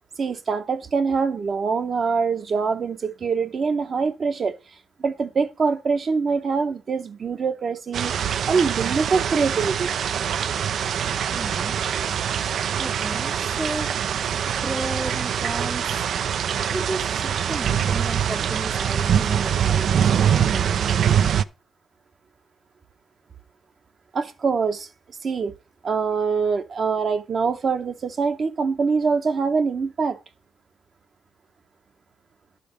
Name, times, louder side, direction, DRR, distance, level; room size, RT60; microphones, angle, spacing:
voice 1, 0.2-4.6 5.0-9.9 24.1-24.9 25.2-25.5 25.8-30.2, right 5 dB, 45° right, 1.0 m, -24 dB
sound 1, 7.9-21.4, right 8 dB, 60° right, 0.4 m, -24 dB
voice 2, 11.3-12.1 12.8-16.1 16.7-21.2, right 1 dB, 10° right, 0.7 m, -34 dB
11.0 x 5.1 x 5.0 m
cardioid pair, 90°, 0 cm